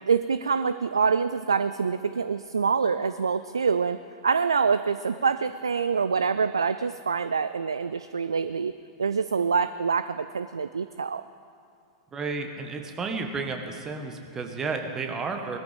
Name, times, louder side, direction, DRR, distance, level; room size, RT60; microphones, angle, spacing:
voice 1, 0.0-4.0 4.2-8.7 9.0-11.2, right 5 dB, 75° right, 13 dB, 0.3 m, -25 dB
voice 2, 12.1-15.6, right 4 dB, 20° right, 4 dB, 1.6 m, -32 dB
20.0 x 13.5 x 3.7 m, 2.3 s
figure-of-eight pair, 95°, 3 cm